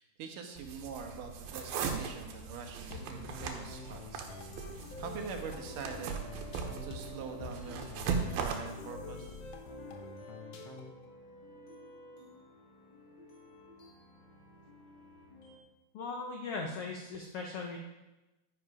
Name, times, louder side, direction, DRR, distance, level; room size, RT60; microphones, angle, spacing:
voice 1, 0.0-4.2 4.7-6.2 6.8-9.3, right 5 dB, 70° right, 4 dB, 2.7 m, -44 dB
sound 1, 0.6-8.5, right 6 dB, 85° right, 2.9 m, -39 dB
sound 2, 2.9-11.0, left 4 dB, 65° left, 1.7 m, -46 dB
sound 3, 5.6-15.6, right 1 dB, 35° left, 2.8 m, -53 dB
voice 2, 15.9-17.8, left 4 dB, 85° left, 2 dB, 1.3 m, -38 dB
10.5 x 10.0 x 4.9 m, 1.1 s
omnidirectional pair, 4.1 m